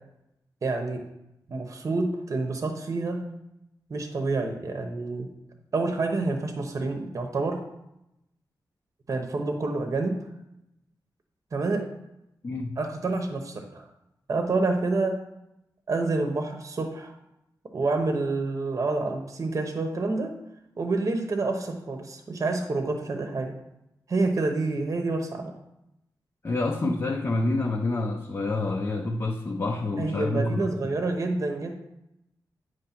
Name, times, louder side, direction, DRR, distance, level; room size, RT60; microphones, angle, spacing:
voice 1, 0.6-1.1 1.5-3.2 3.9-5.3 5.7-7.6 9.1-10.2 11.5-11.9 12.8-13.9 14.3-15.2 15.9-17.1 17.7-20.3 20.8-23.5 24.1-25.5 26.8-26.9 30.0-31.7, right 3 dB, 45° right, 5 dB, 0.8 m, -28 dB
voice 2, 12.4-12.8 26.4-30.9, left 2 dB, 35° left, 1 dB, 0.6 m, -28 dB
9.4 x 3.1 x 5.8 m, 0.86 s
wide cardioid pair, 150°, 8 cm